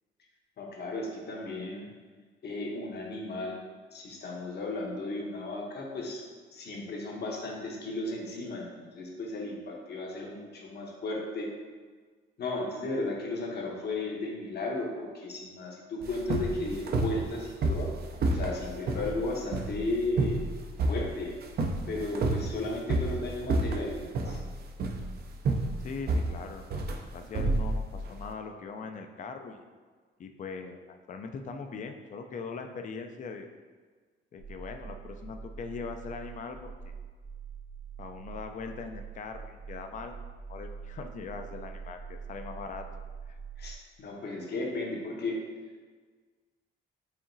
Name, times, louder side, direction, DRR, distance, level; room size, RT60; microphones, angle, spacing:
voice 1, 0.6-1.9 2.4-3.6 3.9-6.2 6.5-11.5 12.4-17.9 18.3-20.4 20.9-21.4 21.9-24.4 43.6-45.4, left 2 dB, 55° left, -1 dB, 0.9 m, -35 dB
sound 1, 16.0-28.2, right 2 dB, 55° right, 0.5 m, -30 dB
voice 2, 25.8-26.8 27.1-29.6 30.2-33.5 34.3-36.9 38.0-40.2 40.5-42.9 43.3-43.4, left 5 dB, 40° left, 6 dB, 0.4 m, -41 dB
sound 2, 34.4-43.8, right 6 dB, 85° right, 0.7 m, -44 dB
4.8 x 2.9 x 2.6 m, 1.5 s
cardioid pair, 90°, 20 cm